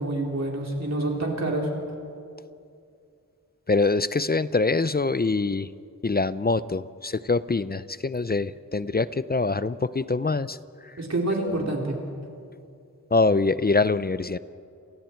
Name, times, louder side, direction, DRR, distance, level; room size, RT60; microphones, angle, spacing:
voice 1, 0.0-1.7 11.0-12.0, right 2 dB, 50° right, -1 dB, 3.8 m, -27 dB
voice 2, 3.7-5.7 6.0-10.6 11.4-11.5 13.1-14.4, left 3 dB, 30° left, 15 dB, 0.5 m, -24 dB
30.0 x 24.0 x 4.5 m, 2.4 s
wide cardioid pair, 75°, 33 cm